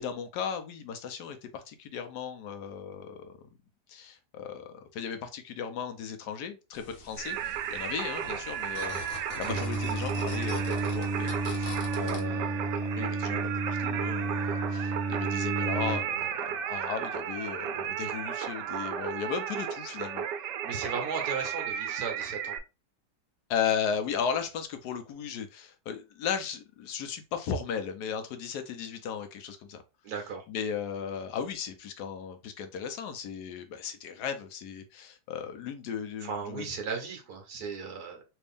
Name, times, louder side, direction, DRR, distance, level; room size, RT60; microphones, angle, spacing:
voice 1, 0.0-3.4 3.9-20.2 23.5-29.8 30.5-36.6, left 7 dB, 75° left, 1.2 m, -36 dB
sound 1, 6.7-12.2, left 3 dB, 55° left, 1.2 m, -43 dB
Singing, 7.2-22.6, right 9 dB, 85° right, 1.2 m, -34 dB
Singing 2, 9.5-16.0, right 3 dB, 50° right, 0.7 m, -31 dB
voice 2, 20.6-22.6 30.0-30.4 36.2-38.2, right 5 dB, 70° right, 1.4 m, -36 dB
3.4 x 2.6 x 3.4 m
omnidirectional pair, 1.8 m